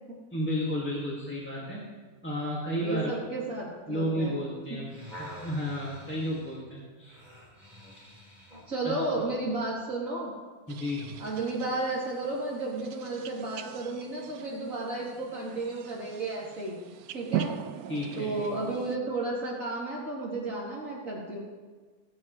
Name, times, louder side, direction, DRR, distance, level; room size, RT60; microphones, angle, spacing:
voice 1, 0.3-1.8 2.2-3.2 3.9-7.2 8.8-9.4 10.7-11.2 17.9-18.5, equal, 5° left, -6 dB, 1.9 m, -32 dB
voice 2, 2.8-4.4 4.7-4.8 8.7-10.3 11.2-16.8 17.1-17.5 18.1-21.4, right 2 dB, 60° right, -6 dB, 3.4 m, -33 dB
sound 1, 4.6-8.7 9.4-9.5, equal, 30° right, 4.3 m, -47 dB
sound 2, 10.7-19.0, right 9 dB, 80° right, 1.1 m, -40 dB
23.0 x 9.1 x 3.2 m, 1.4 s
omnidirectional pair, 1.6 m